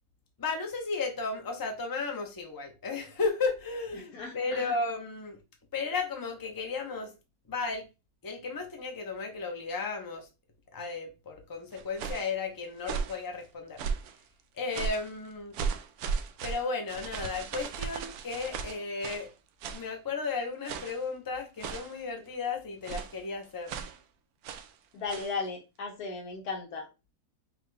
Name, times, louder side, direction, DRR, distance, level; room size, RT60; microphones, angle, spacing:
voice 1, 0.4-5.4 5.7-7.1 7.5-7.9 8.2-10.3 10.7-13.8 14.5-15.6 16.4-19.3 19.7-23.7, left 4 dB, 20° left, 0.6 m, -34 dB
voice 2, 3.9-4.7 24.9-26.9, left 4 dB, 80° left, 1.4 m, -36 dB
sound 1, 11.7-12.3 12.8-13.2 13.8-14.2 14.7-15.1 15.5-19.3 19.6-19.9 20.6-21.0 21.6-22.0 22.8-23.2 23.7-24.0 24.4-24.7 25.1-25.3, right 6 dB, 80° right, 1.1 m, -36 dB
5.8 x 2.3 x 3.2 m
omnidirectional pair, 1.6 m